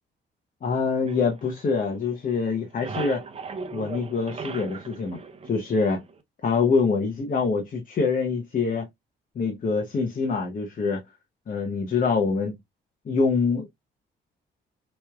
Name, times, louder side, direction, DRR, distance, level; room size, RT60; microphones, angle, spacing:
voice 1, 0.6-3.2 3.7-5.2 5.5-6.0 6.4-8.9 9.3-11.0 11.5-12.5 13.1-13.7, left 4 dB, 45° left, 1.0 m, -25 dB
sound 1, 1.0-2.2 2.5-6.2, right 5 dB, 30° right, 0.7 m, -38 dB
4.3 x 3.1 x 2.4 m
cardioid pair, 90°, 20 cm